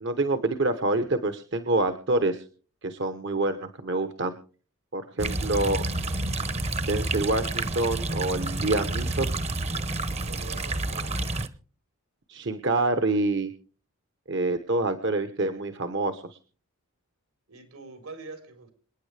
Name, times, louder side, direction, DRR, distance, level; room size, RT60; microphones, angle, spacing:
voice 1, 0.0-2.4 2.8-4.4 4.9-5.8 6.8-9.3 12.3-13.5 14.3-16.4, right 2 dB, 55° right, 9 dB, 1.0 m, -27 dB
voice 2, 5.1-5.6 10.1-11.2 17.5-18.7, right 3 dB, 80° right, 7 dB, 3.9 m, -45 dB
sound 1, 5.2-11.5, right 2 dB, 30° right, 0.9 m, -29 dB
27.0 x 9.6 x 3.3 m, 0.39 s
head